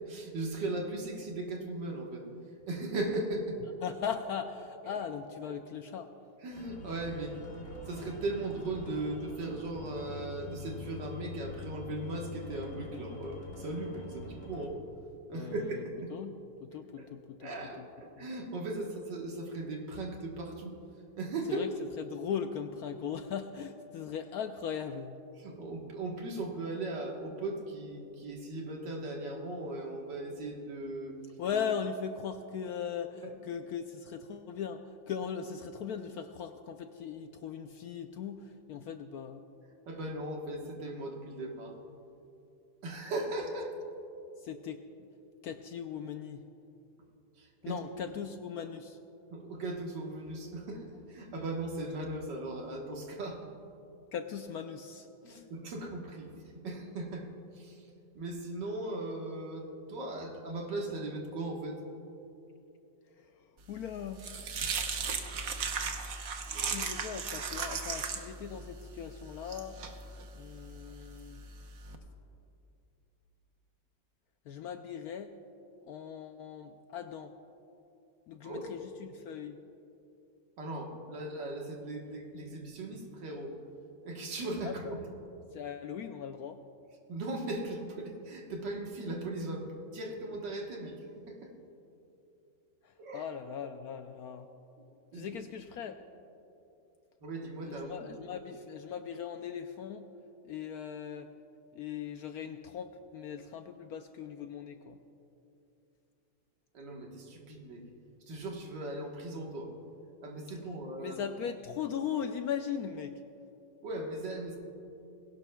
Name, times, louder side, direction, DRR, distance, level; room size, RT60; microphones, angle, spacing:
voice 1, 0.1-2.2 2.7-3.6 4.8-5.0 6.4-7.4 7.6-14.8 15.3-16.1 17.0-17.1 17.4-20.7 21.2-21.6 25.4-31.1 33.2-33.3 39.9-41.8 42.8-43.8 47.4-47.8 49.3-53.4 55.2-57.3 57.5-57.9 58.2-61.8 78.4-78.7 80.6-83.5 84.0-85.0 87.1-91.5 93.0-93.3 95.1-95.3 97.2-97.9 106.7-107.8 108.3-109.7 110.2-111.2 113.8-114.6, right 2 dB, 75° right, 0 dB, 2.1 m, -38 dB
voice 2, 3.8-6.1 15.3-15.8 16.1-16.3 16.6-17.5 17.8-17.9 18.2-18.3 21.5-21.7 22.0-25.2 31.4-39.4 44.4-44.8 45.4-46.4 47.6-49.0 54.1-55.4 63.7-64.2 66.6-69.8 70.3-71.4 74.5-75.3 75.8-77.3 78.3-79.6 84.6-85.0 85.5-86.6 92.8-94.5 95.1-96.0 97.6-100.1 100.4-101.3 101.7-105.0 111.0-113.2, left 7 dB, 70° left, 7 dB, 0.9 m, -39 dB
sound 1, 6.5-14.7, left 3 dB, 50° left, 2.3 m, -45 dB
sound 2, 63.7-71.9, right 5 dB, 55° right, 1.2 m, -37 dB
21.0 x 17.0 x 2.3 m, 2.8 s
omnidirectional pair, 2.0 m